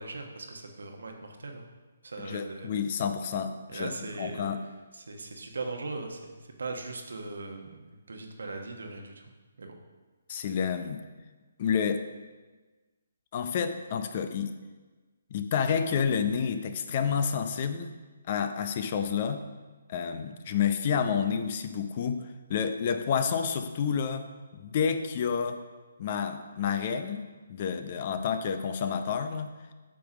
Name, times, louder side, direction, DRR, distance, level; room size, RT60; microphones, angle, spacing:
voice 1, 0.0-1.7 2.0-2.7 3.7-4.5 4.9-9.2 9.6-9.7, right 3 dB, 80° right, 3 dB, 1.1 m, -39 dB
voice 2, 2.2-3.9 4.2-4.6 10.3-11.0 11.6-12.0 13.3-14.5 15.3-18.0 18.3-19.4 19.9-22.2 22.5-24.3 24.5-25.6 26.0-29.5, left 7 dB, 45° left, 9 dB, 0.6 m, -29 dB
8.5 x 3.6 x 5.9 m, 1.3 s
hypercardioid pair, 145°, 0 cm